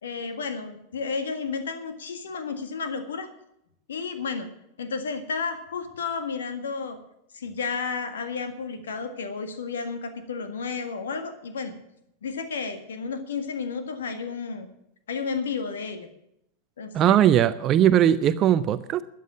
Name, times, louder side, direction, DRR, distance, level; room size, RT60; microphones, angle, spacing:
voice 1, 0.0-3.3 3.9-4.5 4.8-7.0 7.3-11.7 12.2-14.7 15.1-16.1 16.8-17.2, left 5 dB, 65° left, 8 dB, 1.7 m, -32 dB
voice 2, 16.9-19.0, right 10 dB, 30° right, 14 dB, 0.5 m, -19 dB
13.5 x 9.3 x 7.2 m, 0.79 s
figure-of-eight pair, 90°, 0 cm